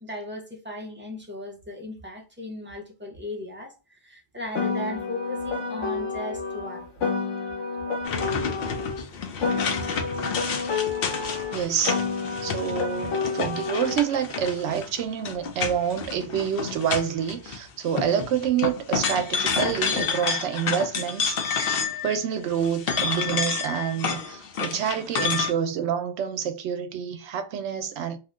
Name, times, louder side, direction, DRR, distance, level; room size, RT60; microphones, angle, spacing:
voice 1, 0.0-6.9, left 1 dB, 15° right, 0.4 m, -37 dB
Piano, 4.5-9.0 9.4-14.0, left 5 dB, 90° left, 1.2 m, -29 dB
sound 1, 8.0-17.6 17.9-22.2 22.5-25.5, left 6 dB, 60° left, 0.7 m, -29 dB
voice 2, 11.5-12.0 12.4-28.2, right 8 dB, 75° right, 0.9 m, -27 dB
2.7 x 2.1 x 3.5 m
omnidirectional pair, 1.2 m